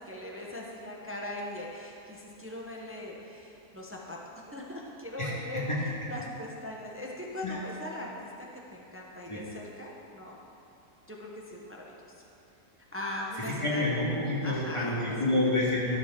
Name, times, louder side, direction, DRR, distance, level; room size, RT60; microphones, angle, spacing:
voice 1, 0.0-5.7 6.1-8.3 8.7-10.4 11.1-12.1 12.9-13.8 14.4-15.2, left 1 dB, 20° right, -2 dB, 0.3 m, -40 dB
voice 2, 5.2-5.8 7.4-7.6 9.3-9.4 13.4-16.0, left 1 dB, 20° left, -7 dB, 1.5 m, -29 dB
12.5 x 6.1 x 3.6 m, 2.7 s
omnidirectional pair, 1.6 m